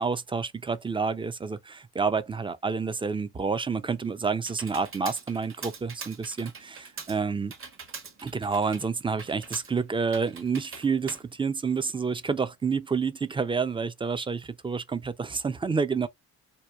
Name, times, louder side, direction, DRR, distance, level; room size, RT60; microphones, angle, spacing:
voice 1, 0.0-7.5 8.2-16.1, right 5 dB, 15° right, 0.3 m, -29 dB
Computer keyboard, 3.6-12.2, right 5 dB, 40° right, 1.0 m, -44 dB
2.8 x 2.1 x 2.2 m
supercardioid pair, 70°, 33 cm